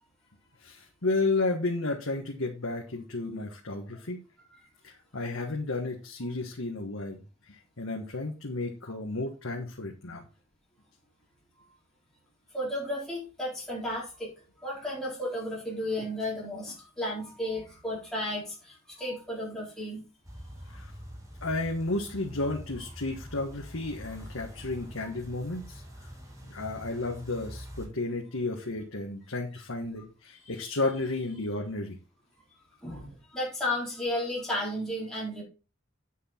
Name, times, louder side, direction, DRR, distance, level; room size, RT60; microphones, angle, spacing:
voice 1, 0.6-4.2 4.8-10.2 20.6-20.9 21.4-26.1 26.4-32.0, left 2 dB, 80° left, 0 dB, 1.6 m, -32 dB
voice 2, 12.5-14.3 14.6-20.0 32.8-35.4, left 1 dB, 5° left, -7 dB, 4.2 m, -33 dB
sound 1, 20.2-27.9, equal, 15° right, 2.1 m, -45 dB
9.5 x 6.4 x 4.4 m, 0.33 s
head